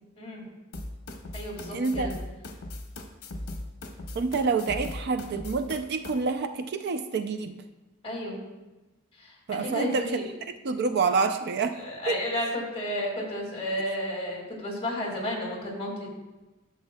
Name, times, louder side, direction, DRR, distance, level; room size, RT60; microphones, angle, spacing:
voice 1, 0.2-0.5 1.3-2.2 8.0-8.4 9.2-10.2 11.7-16.1, left 1 dB, 30° left, -2 dB, 2.0 m, -32 dB
sound 1, 0.7-6.1, left 1 dB, 75° left, 0.9 m, -38 dB
voice 2, 1.7-2.1 4.1-7.6 9.5-10.1 10.6-11.8 12.1-12.2, right 4 dB, 50° right, 8 dB, 0.4 m, -27 dB
11.5 x 7.0 x 2.2 m, 1.1 s
head